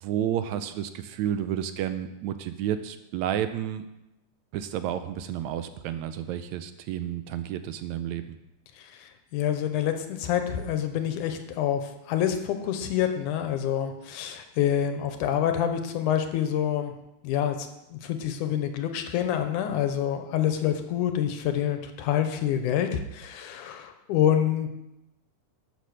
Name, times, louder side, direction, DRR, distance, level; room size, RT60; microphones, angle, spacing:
voice 1, 0.0-3.9 4.5-8.2, right 10 dB, 80° right, 10 dB, 1.8 m, -31 dB
voice 2, 9.0-11.8 12.1-16.9 17.2-24.7, left 10 dB, 90° left, 7 dB, 2.4 m, -27 dB
12.0 x 6.4 x 6.6 m, 0.90 s
omnidirectional pair, 3.5 m